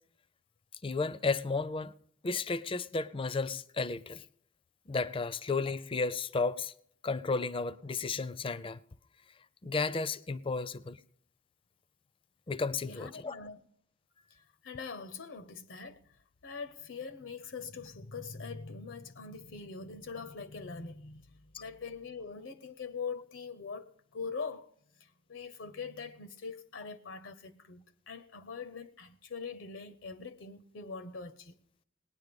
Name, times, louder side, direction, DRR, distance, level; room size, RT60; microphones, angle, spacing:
voice 1, 0.8-1.9 2.2-4.2 4.9-6.7 7.0-8.8 9.6-11.0 12.5-13.4, left 4 dB, 30° left, 0.5 m, -33 dB
voice 2, 12.8-13.7 14.3-16.0 16.4-31.6, left 5 dB, 80° left, 0.8 m, -43 dB
19.5 x 10.0 x 5.2 m
head